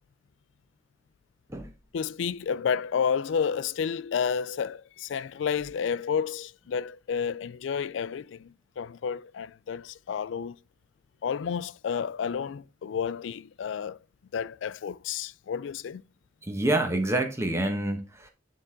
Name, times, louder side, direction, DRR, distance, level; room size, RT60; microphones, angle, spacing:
voice 1, 1.9-10.6 11.2-14.0 14.3-16.0, left 7 dB, 75° left, 0.4 m, -31 dB
voice 2, 16.4-18.3, right 1 dB, 15° right, 1.1 m, -27 dB
10.0 x 4.0 x 3.7 m
head